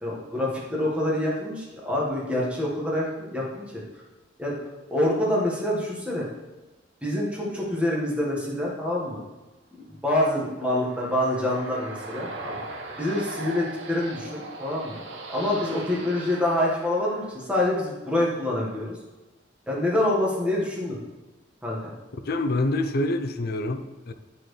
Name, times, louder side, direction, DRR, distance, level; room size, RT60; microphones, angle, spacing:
voice 1, 0.0-3.8 4.4-4.6 4.9-6.3 7.0-9.2 9.9-12.6 13.0-15.0 15.3-19.0 19.7-21.0 21.6-21.9, left 1 dB, 5° right, 1.5 m, -26 dB
sound 1, 10.5-17.8, right 2 dB, 75° right, 0.9 m, -39 dB
voice 2, 22.2-24.1, left 2 dB, 55° left, 0.5 m, -26 dB
9.0 x 4.4 x 3.2 m
head